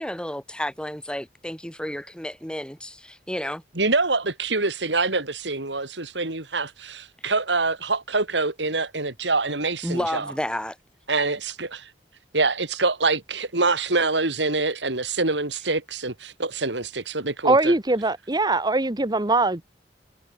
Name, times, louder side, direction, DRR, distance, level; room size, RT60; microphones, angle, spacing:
voice 1, 0.0-3.6 9.8-10.8, left 1 dB, 5° left, 4.3 m, -31 dB
voice 2, 3.8-10.3 11.1-11.9 12.3-17.7, right 3 dB, 80° right, 3.8 m, -25 dB
voice 3, 17.4-19.6, right 2 dB, 25° right, 1.4 m, -21 dB
head